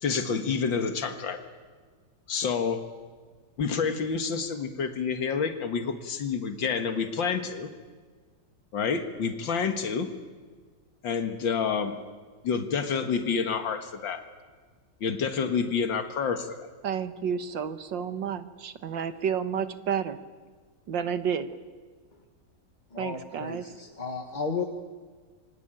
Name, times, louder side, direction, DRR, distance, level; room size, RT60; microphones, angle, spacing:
voice 1, 0.0-1.4 2.3-2.8 3.6-7.7 8.7-10.1 11.0-11.9 12.4-14.2 15.0-16.6, left 5 dB, 90° left, 7 dB, 2.4 m, -28 dB
voice 2, 16.8-20.2 20.9-21.5 23.0-23.6, right 7 dB, 80° right, 11 dB, 2.0 m, -30 dB
voice 3, 22.9-24.6, left 4 dB, 25° left, 4 dB, 1.5 m, -34 dB
28.0 x 23.5 x 9.1 m, 1.5 s
omnidirectional pair, 2.0 m